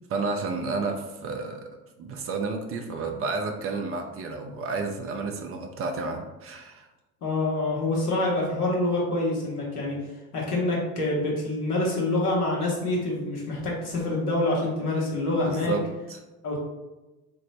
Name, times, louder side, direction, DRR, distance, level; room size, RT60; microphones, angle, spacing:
voice 1, 0.1-1.7 2.0-6.9 15.4-16.2, right 3 dB, 30° right, 3 dB, 0.5 m, -31 dB
voice 2, 7.2-10.0 10.3-15.8 16.4-16.6, left 2 dB, 80° left, -4 dB, 1.1 m, -26 dB
3.5 x 2.0 x 4.0 m, 1.1 s
figure-of-eight pair, 60°, 45 cm